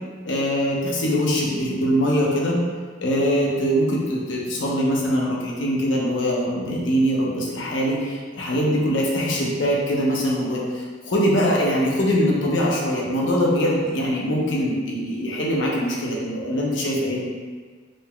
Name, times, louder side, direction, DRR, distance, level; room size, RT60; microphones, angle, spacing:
voice 1, 0.2-2.6 3.0-17.2, equal, 80° left, -3 dB, 0.9 m, -22 dB
5.2 x 3.7 x 2.3 m, 1.5 s
head